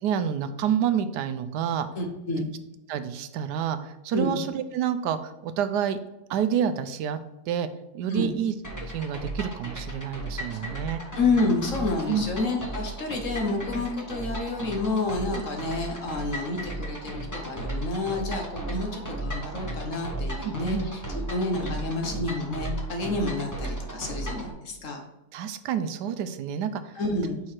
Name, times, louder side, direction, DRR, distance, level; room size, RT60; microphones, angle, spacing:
voice 1, 0.0-1.9 2.9-6.0 6.3-7.2 7.5-7.7 7.9-8.5 8.8-11.0 12.1-12.2 20.4-20.9 25.3-27.0, right 8 dB, 90° right, 11 dB, 1.2 m, -28 dB
voice 2, 2.0-2.5 4.1-4.4 8.1-8.4 11.1-20.8 21.3-25.0 26.9-27.4, left 3 dB, 55° left, 3 dB, 1.2 m, -29 dB
sound 1, 8.6-24.5, right 1 dB, 15° left, 0.8 m, -35 dB
5.7 x 4.7 x 4.3 m, 0.93 s
omnidirectional pair, 1.7 m